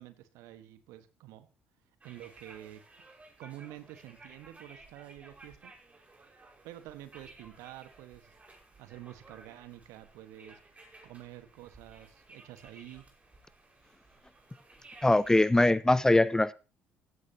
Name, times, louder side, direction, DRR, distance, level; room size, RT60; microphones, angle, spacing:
voice 1, 0.0-1.5 2.0-2.8 3.4-5.7 6.6-8.4 8.8-10.6 11.0-13.0, right 14 dB, 60° right, 1.6 m, -48 dB
sound 1, 2.0-15.5, right 2 dB, 25° right, 5.5 m, -56 dB
voice 2, 15.0-16.5, left 2 dB, 10° left, 0.6 m, -22 dB
16.5 x 15.5 x 3.0 m
figure-of-eight pair, 50°, 6 cm